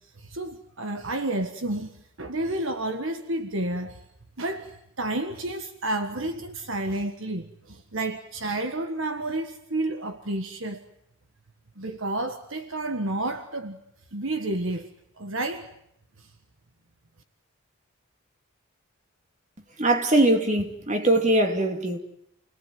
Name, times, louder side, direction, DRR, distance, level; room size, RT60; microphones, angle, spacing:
voice 1, 0.2-4.0 4.4-10.8 11.8-13.8 14.1-14.9 15.2-15.7 16.2-16.3, right 2 dB, 60° right, 1.6 m, -30 dB
voice 2, 19.8-22.0, right 1 dB, 35° right, 2.7 m, -21 dB
29.0 x 19.0 x 9.5 m
head